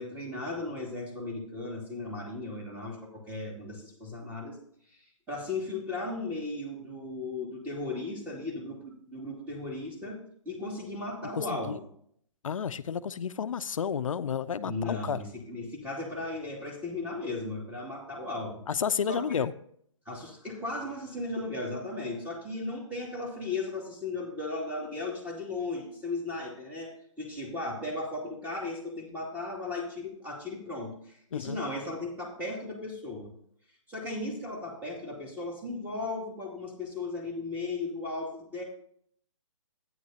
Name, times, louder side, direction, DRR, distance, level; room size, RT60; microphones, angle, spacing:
voice 1, 0.0-4.6 4.9-10.2 10.4-11.9 14.6-18.6 19.1-19.4 20.1-33.3 33.9-38.6, left 2 dB, 10° right, 2.6 m, -36 dB
voice 2, 11.4-11.8 12.4-15.2 18.7-19.5 31.3-31.6, left 7 dB, 85° left, 0.5 m, -31 dB
12.0 x 9.3 x 2.8 m
hypercardioid pair, 145°, 17 cm